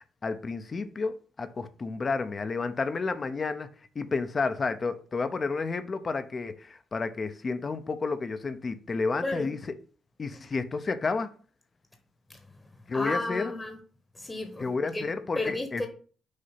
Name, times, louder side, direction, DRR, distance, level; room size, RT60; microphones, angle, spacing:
voice 1, 0.2-3.7 3.9-9.8 10.2-11.3 12.9-13.5 14.6-15.8, left 4 dB, 35° left, 0.6 m, -31 dB
voice 2, 9.2-9.5 12.3-12.4 12.7-13.8 14.1-15.1 15.3-15.9, left 2 dB, 15° left, 1.0 m, -33 dB
6.4 x 2.8 x 5.7 m
cardioid pair, 90°, 0 cm